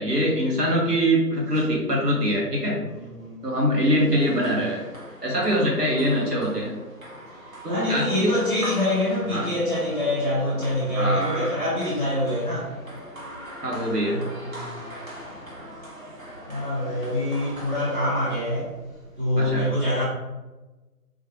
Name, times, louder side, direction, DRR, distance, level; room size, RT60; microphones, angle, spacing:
voice 1, 0.0-2.8 3.4-4.8 5.2-6.8 7.6-8.3 9.3-9.5 10.9-11.5 13.6-14.2 19.4-19.7, equal, 80° right, -3 dB, 1.4 m, -23 dB
voice 2, 2.8-3.5 7.6-12.8 14.1-14.9 16.5-18.8 19.2-20.0, left 1 dB, 35° right, -12 dB, 1.0 m, -25 dB
sound 1, 3.8-18.7, right 1 dB, 60° right, 1.3 m, -41 dB
3.8 x 2.5 x 3.2 m, 1.1 s
figure-of-eight pair, 160°, 48 cm